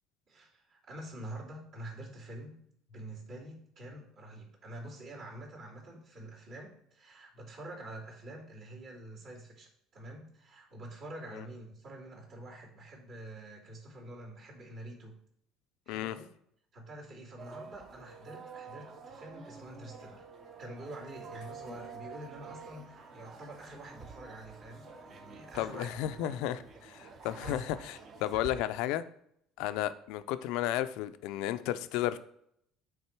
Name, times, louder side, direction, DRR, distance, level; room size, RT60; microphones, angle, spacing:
voice 1, 0.3-2.5 2.9-15.2 15.9-16.3 16.7-20.2 20.6-26.4 27.1-27.6, right 1 dB, 60° right, -8 dB, 2.8 m, -47 dB
sound 1, 17.4-28.5, right 5 dB, 40° right, 0.9 m, -49 dB
voice 2, 25.5-29.0 29.6-32.2, left 13 dB, 75° left, 13 dB, 0.4 m, -33 dB
8.7 x 3.6 x 4.5 m, 0.71 s
cardioid pair, 150°, 0 cm